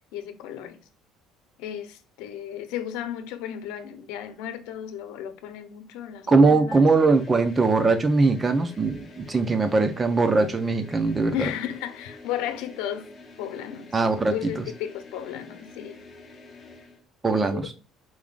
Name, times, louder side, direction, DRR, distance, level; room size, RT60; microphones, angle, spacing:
voice 1, 0.1-0.8 1.6-6.9 11.3-13.1 13.4-13.9 14.3-16.0 17.3-17.7, left 10 dB, 85° left, 0.8 m, -34 dB
voice 2, 6.3-11.5 13.9-14.7 17.2-17.7, right 3 dB, 15° right, 0.6 m, -21 dB
sound 1, 6.7-17.0, left 3 dB, 25° left, 1.2 m, -47 dB
4.7 x 3.6 x 2.4 m
cardioid pair, 170°, 0 cm